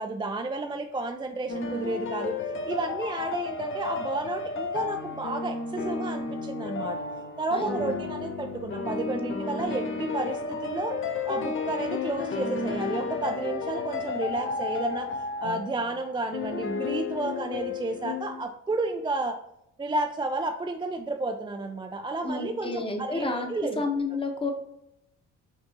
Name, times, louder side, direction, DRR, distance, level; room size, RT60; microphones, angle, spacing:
voice 1, 0.0-2.4 2.7-7.0 7.4-10.9 11.3-15.1 15.4-19.4 19.8-23.8, right 2 dB, 15° right, 4 dB, 0.3 m, -31 dB
sound 1, 1.5-18.4, left 4 dB, 45° left, 0.6 m, -32 dB
voice 2, 7.5-8.0 22.2-23.5 23.8-24.5, left 3 dB, 20° left, 4 dB, 0.9 m, -30 dB
5.8 x 2.7 x 2.8 m, 0.79 s
cardioid pair, 90°, 30 cm